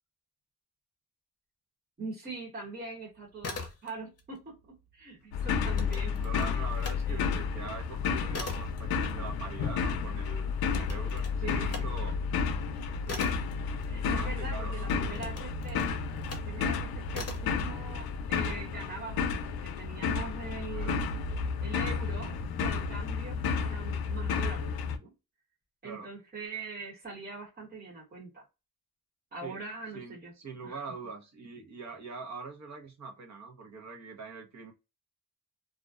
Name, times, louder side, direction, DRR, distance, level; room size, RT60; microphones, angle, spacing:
voice 1, 2.0-6.1 7.1-7.3 11.4-11.9 13.1-13.4 13.9-15.9 16.2-21.0 21.6-24.7 25.0-25.1 25.8-28.4 29.3-30.3 30.6-30.8, right 4 dB, 25° right, -3 dB, 1.0 m, -42 dB
sound 1, 3.2-4.2 4.5-7.0 7.4-14.4 15.1-16.5 17.1-17.6, left 3 dB, 45° left, 0.7 m, -42 dB
sound 2, 5.3-25.0, left 5 dB, 85° left, 0.5 m, -32 dB
voice 2, 6.1-12.1 14.0-14.9 20.7-21.0 25.8-26.1 29.4-29.6 29.9-34.7, right 4 dB, 50° right, 3 dB, 0.8 m, -43 dB
2.4 x 2.1 x 2.4 m, 0.26 s
wide cardioid pair, 160°, 36 cm